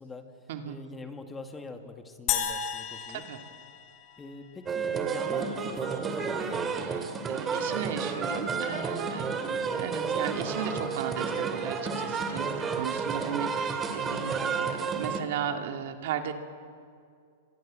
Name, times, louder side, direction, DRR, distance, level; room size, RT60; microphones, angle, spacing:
voice 1, 0.0-3.2 4.2-7.1 9.0-9.4 12.4-12.8, left 3 dB, 10° left, 6 dB, 2.1 m, -45 dB
sound 1, 2.3-4.7, left 9 dB, 40° left, 2.4 m, -33 dB
voice 2, 3.1-3.4 6.7-16.3, right 8 dB, 60° right, 5 dB, 2.5 m, -36 dB
sound 2, 4.7-15.2, right 5 dB, 20° right, 2.7 m, -31 dB
29.0 x 25.5 x 7.6 m, 2.3 s
hypercardioid pair, 140°, 0 cm